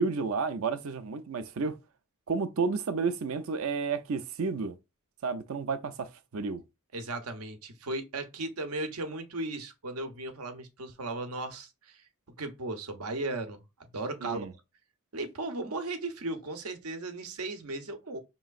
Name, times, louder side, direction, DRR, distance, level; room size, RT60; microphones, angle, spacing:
voice 1, 0.0-1.8 2.3-4.7 5.2-6.1 6.3-6.6 14.2-14.5, right 4 dB, 65° right, 0.5 m, -31 dB
voice 2, 6.9-12.0 12.4-13.6 13.9-14.5 15.1-18.2, right 2 dB, 90° right, 0.9 m, -36 dB
5.5 x 3.0 x 2.4 m
head